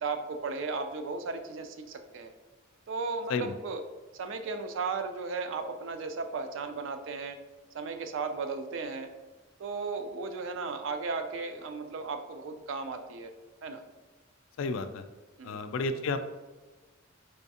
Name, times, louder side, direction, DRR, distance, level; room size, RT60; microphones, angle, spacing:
voice 1, 0.0-2.3 2.9-3.8 4.1-7.4 7.7-9.1 9.6-13.3 13.6-13.8 15.4-15.6, right 4 dB, 65° right, 7 dB, 0.4 m, -35 dB
voice 2, 14.6-15.0 15.4-16.2, left 3 dB, 75° left, 10 dB, 0.3 m, -31 dB
3.4 x 3.0 x 2.8 m, 1.2 s
head